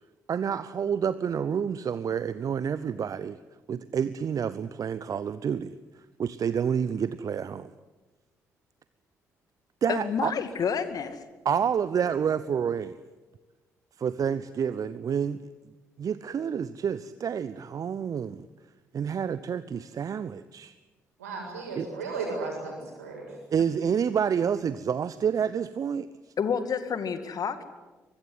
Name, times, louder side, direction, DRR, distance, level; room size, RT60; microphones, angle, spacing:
voice 1, 0.3-3.4 3.7-5.8 6.2-7.7 9.8-10.3 11.4-13.0 14.0-15.4 16.0-18.5 18.9-20.7 21.8-21.9 23.5-26.1, right 7 dB, 45° right, 15 dB, 0.8 m, -28 dB
voice 2, 9.9-11.2 26.4-27.6, left 6 dB, 50° left, 11 dB, 2.3 m, -29 dB
voice 3, 21.2-23.3, right 3 dB, 85° right, 0 dB, 7.2 m, -35 dB
24.0 x 20.5 x 9.6 m, 1.2 s
figure-of-eight pair, 45°, 8 cm